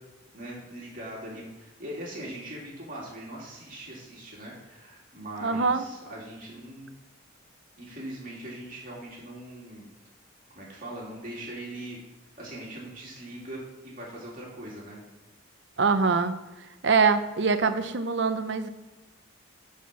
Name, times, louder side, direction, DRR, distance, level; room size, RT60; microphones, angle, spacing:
voice 1, 0.3-6.9 7.8-9.9 10.5-12.0 12.4-15.0, right 1 dB, 40° right, -4 dB, 2.7 m, -41 dB
voice 2, 5.4-5.8 15.8-16.4 16.8-18.7, right 4 dB, 55° right, 9 dB, 0.7 m, -23 dB
10.5 x 4.3 x 6.1 m, 1.1 s
head